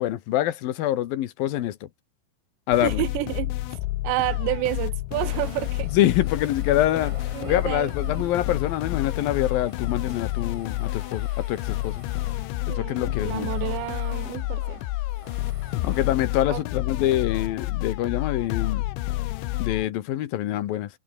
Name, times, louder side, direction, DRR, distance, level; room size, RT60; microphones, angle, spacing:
voice 1, 0.0-1.8 2.7-3.0 5.9-7.2 7.4-12.0 12.8-13.5 15.8-18.8 19.6-20.9, left 13 dB, 65° left, 2.6 m, -25 dB
sound 1, 2.7-19.9, left 17 dB, 90° left, 3.4 m, -29 dB
voice 2, 2.8-3.5 4.0-5.9 7.3-8.6 12.7-14.8 16.5-16.6, right 17 dB, 80° right, 3.1 m, -30 dB
ambiance chantier, 5.2-16.2, left 1 dB, 5° left, 5.1 m, -47 dB
omnidirectional pair, 5.2 m